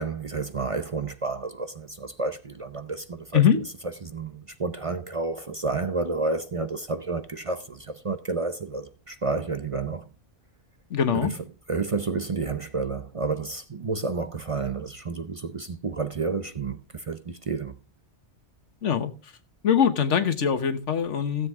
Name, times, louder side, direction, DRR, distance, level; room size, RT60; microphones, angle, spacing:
voice 1, 0.0-3.6 4.0-10.1 11.2-11.3 11.7-17.7, right 3 dB, 35° right, 0.6 m, -30 dB
voice 2, 10.9-11.3 18.8-19.3 19.6-21.5, left 8 dB, 90° left, 1.4 m, -22 dB
16.0 x 7.5 x 3.6 m
omnidirectional pair, 1.2 m